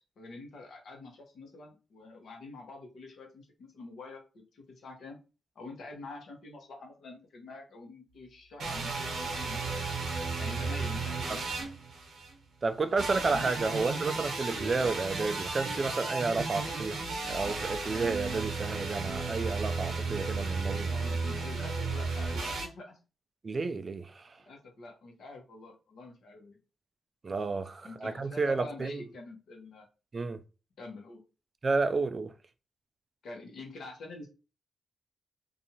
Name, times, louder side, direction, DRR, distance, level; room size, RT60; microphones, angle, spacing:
voice 1, 0.2-5.2 5.5-10.0 10.4-11.7 12.9-14.3 20.8-23.0 24.4-26.6 27.8-29.9 30.8-31.2 33.2-34.3, left 2 dB, 75° left, 1.0 m, -46 dB
sound 1, 8.6-12.3 13.0-22.7, right 3 dB, 80° right, 0.8 m, -34 dB
voice 2, 12.6-20.9 23.4-24.4 27.2-29.0 30.1-30.4 31.6-32.3, right 3 dB, 45° right, 0.3 m, -31 dB
2.6 x 2.3 x 2.8 m
cardioid pair, 70°, 0 cm